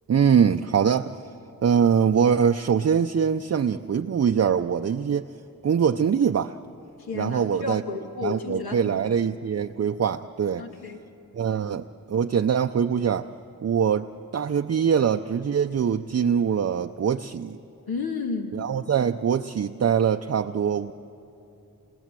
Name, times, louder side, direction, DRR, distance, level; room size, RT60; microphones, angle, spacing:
voice 1, 0.1-1.3 1.6-5.3 5.6-6.6 7.1-7.8 8.2-10.6 11.3-13.3 13.6-17.6 18.5-20.9, right 7 dB, 45° right, 7 dB, 0.5 m, -23 dB
voice 2, 7.0-9.0 10.6-11.0 17.9-18.6, left 4 dB, 85° left, 2 dB, 2.3 m, -32 dB
28.5 x 21.5 x 7.5 m, 2.8 s
cardioid pair, 70°, 36 cm